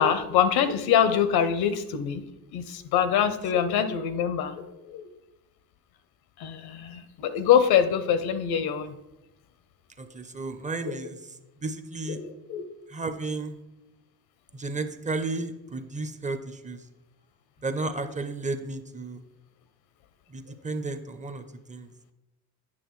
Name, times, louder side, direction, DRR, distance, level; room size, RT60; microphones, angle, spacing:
voice 1, 0.0-2.2 2.5-5.0 6.4-8.9 10.9-11.0 12.1-12.6, left 8 dB, 75° left, 11 dB, 0.7 m, -24 dB
voice 2, 10.0-11.2 11.6-12.2 12.9-13.5 14.5-16.8 17.6-19.2 20.3-21.9, right 3 dB, 20° right, 8 dB, 0.5 m, -33 dB
8.6 x 6.3 x 3.1 m, 0.96 s
cardioid pair, 115°, 38 cm